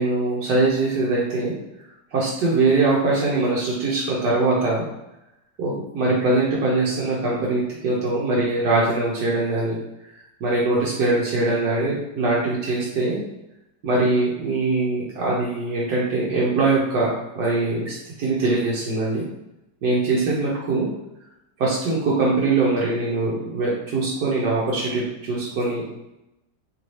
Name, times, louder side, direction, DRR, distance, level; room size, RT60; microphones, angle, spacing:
voice 1, 0.0-1.5 2.1-4.8 5.6-9.8 10.1-13.2 13.8-19.3 19.8-20.9 21.6-25.9, right 3 dB, 70° right, -6 dB, 1.3 m, -22 dB
3.2 x 2.7 x 3.0 m, 0.90 s
omnidirectional pair, 1.9 m